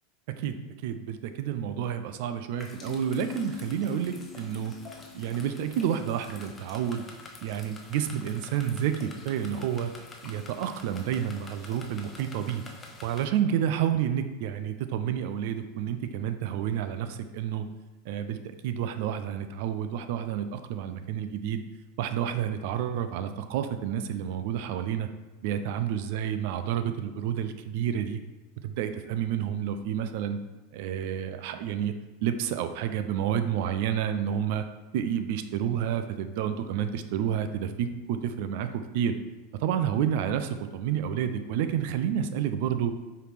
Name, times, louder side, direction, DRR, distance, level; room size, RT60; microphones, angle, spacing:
voice 1, 0.8-4.7 5.1-7.0 7.4-9.9 10.2-12.6 13.0-17.7 18.1-21.6 22.0-25.1 25.4-28.2 28.6-30.4 30.7-31.9 32.2-34.6 34.9-38.7 38.9-39.2 39.6-42.9, right 9 dB, 65° right, 9 dB, 0.3 m, -29 dB
sound 1, 2.6-13.3, left 3 dB, 25° left, 0.7 m, -48 dB
sound 2, 2.8-6.4, left 9 dB, ahead, 1.1 m, -43 dB
4.7 x 3.2 x 3.3 m, 1.2 s
hypercardioid pair, 100°, 0 cm